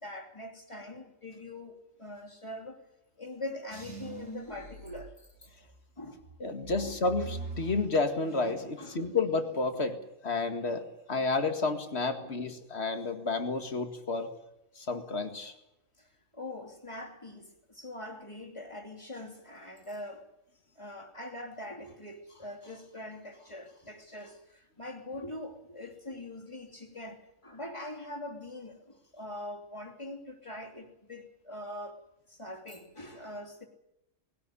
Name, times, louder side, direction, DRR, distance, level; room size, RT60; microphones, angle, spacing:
voice 1, 0.0-2.8 3.2-5.3 6.0-6.3 6.8-6.9 8.6-9.1 12.2-12.3 16.0-20.3 20.8-32.0 32.3-33.7, left 1 dB, 25° left, 3.0 m, -43 dB
sound 1, 3.7-5.7 6.2-8.8 9.1-9.7, right 3 dB, 85° right, 3.8 m, -44 dB
voice 2, 6.4-10.0 10.2-14.3 14.8-15.5, left 3 dB, 55° left, 2.3 m, -31 dB
20.0 x 17.5 x 9.8 m
omnidirectional pair, 1.3 m